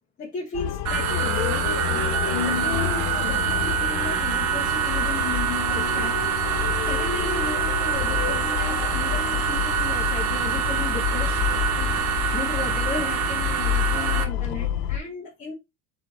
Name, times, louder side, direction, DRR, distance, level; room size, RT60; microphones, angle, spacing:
voice 1, 0.2-11.4 12.3-15.5, left 4 dB, 20° left, 0.7 m, -35 dB
sound 1, 0.5-15.0, left 10 dB, 55° left, 0.4 m, -28 dB
sound 2, 0.8-14.2, right 10 dB, 40° right, 0.7 m, -26 dB
4.1 x 3.1 x 3.7 m
cardioid pair, 140°, 41 cm